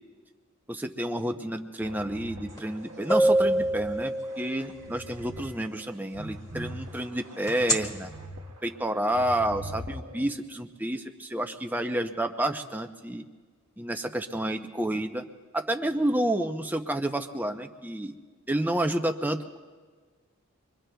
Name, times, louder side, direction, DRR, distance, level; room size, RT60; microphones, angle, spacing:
voice 1, 0.7-8.1 8.6-13.3 13.8-15.2 15.5-18.1 18.5-19.6, right 1 dB, 10° right, 5 dB, 0.5 m, -30 dB
sound 1, 1.8-3.9 4.3-5.4 5.8-8.4 8.8-10.2, right 1 dB, 65° right, 1.1 m, -42 dB
sound 2, 2.6-2.7 3.1-4.8 7.5-7.7, right 1 dB, 15° left, 1.4 m, -24 dB
26.5 x 22.5 x 2.3 m, 1.5 s
head